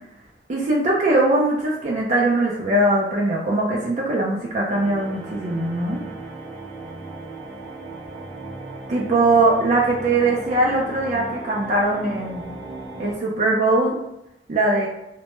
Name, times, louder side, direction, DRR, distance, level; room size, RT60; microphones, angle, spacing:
voice 1, 0.5-6.0 8.9-12.4 13.0-14.0 14.5-14.9, right 2 dB, 40° right, -3 dB, 0.4 m, -21 dB
sound 1, 4.7-13.1, right 3 dB, 5° right, 0.7 m, -36 dB
2.1 x 2.1 x 2.9 m, 0.84 s
head